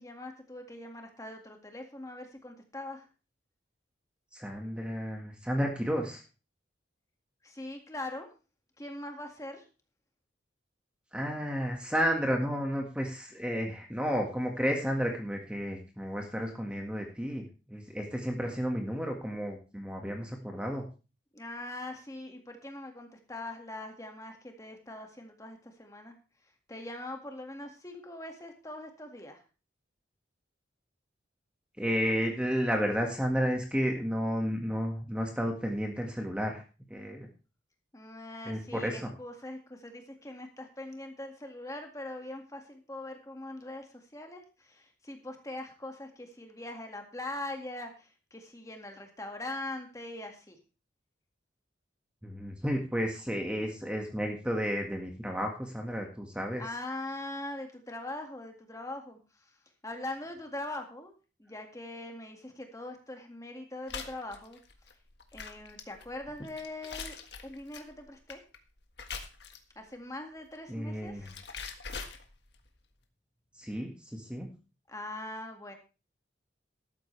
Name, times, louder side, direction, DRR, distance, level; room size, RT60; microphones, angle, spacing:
voice 1, 0.0-3.1 7.4-8.3 8.8-9.7 21.3-26.2 26.7-29.4 37.9-50.6 56.6-59.6 59.8-61.1 61.4-64.6 65.3-67.2 67.4-68.4 69.8-71.4 74.9-75.7, left 2 dB, 15° left, 4 dB, 2.0 m, -42 dB
voice 2, 4.3-6.2 11.1-20.8 31.8-36.6 36.9-37.3 38.5-39.1 52.2-56.6 70.7-71.3 73.6-74.5, equal, 5° right, 2 dB, 1.7 m, -32 dB
sound 1, 63.9-69.8 70.9-72.7, left 5 dB, 60° left, 1.6 m, -43 dB
13.5 x 12.5 x 3.3 m, 0.32 s
head